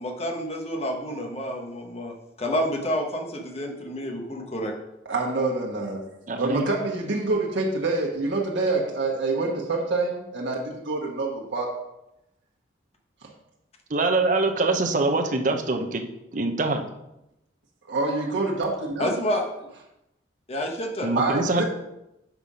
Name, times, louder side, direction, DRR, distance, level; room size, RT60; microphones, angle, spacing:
voice 1, 0.0-4.7 19.0-19.7 20.5-21.1, equal, 35° left, 1 dB, 1.1 m, -29 dB
voice 2, 5.0-6.0 6.3-11.7 17.9-19.1 21.1-21.6, right 3 dB, 80° right, -2 dB, 1.2 m, -26 dB
voice 3, 6.3-6.7 13.9-16.0 16.3-16.8 21.0-21.6, right 2 dB, 45° right, 5 dB, 0.7 m, -24 dB
6.0 x 5.5 x 4.9 m, 0.88 s
head